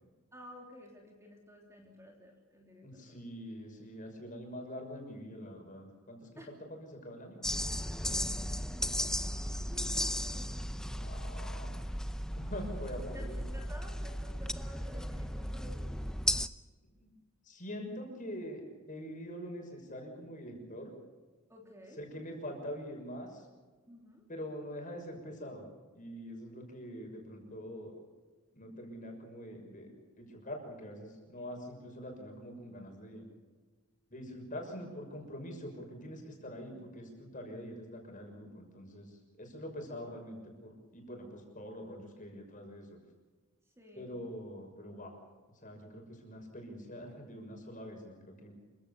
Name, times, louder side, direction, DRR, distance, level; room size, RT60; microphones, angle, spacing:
voice 1, 0.3-3.2 6.4-6.5 9.0-11.1 13.1-16.0 21.5-22.0 23.9-24.3 31.3-31.5 36.7-36.8 43.8-44.2, equal, 15° right, 0 dB, 3.3 m, -53 dB
voice 2, 2.8-6.3 6.7-7.7 8.2-8.3 8.7-8.8 10.9-11.9 12.3-13.4 17.0-17.1 17.4-18.6 18.9-20.9 22.0-23.5 24.3-25.6 25.9-27.9 28.5-33.2 34.1-43.0 43.9-45.1 45.6-48.5, equal, 40° left, 2 dB, 6.4 m, -44 dB
sound 1, 7.4-16.5, equal, 5° left, 0.7 m, -35 dB
27.5 x 16.5 x 7.0 m, 1.4 s
head